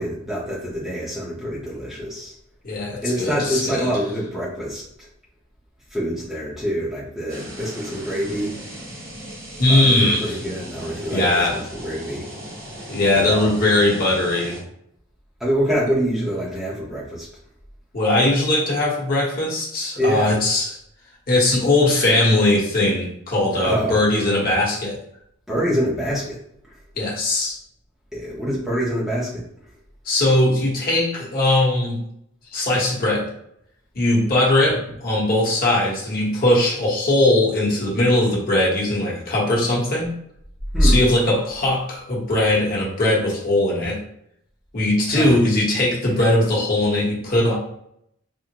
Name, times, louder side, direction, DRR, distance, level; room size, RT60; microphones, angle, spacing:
voice 1, 0.0-2.3 3.0-5.1 5.9-8.5 9.7-12.3 13.1-13.5 15.4-17.3 20.0-20.4 23.6-24.0 25.5-26.4 26.6-26.7 28.1-29.4 40.7-41.0 45.1-45.3, equal, ahead, -7 dB, 0.7 m, -25 dB
voice 2, 2.6-3.9 9.6-10.4 11.1-11.6 12.9-14.6 17.9-20.7 21.3-25.0 27.0-27.6 30.0-32.0 32.5-33.3 33.9-40.1 40.8-44.0 44.7-47.6, left 1 dB, 45° left, -5 dB, 1.0 m, -20 dB
sound 1, 7.3-14.6, equal, 70° right, 1.3 m, -37 dB
3.5 x 2.0 x 2.8 m, 0.74 s
head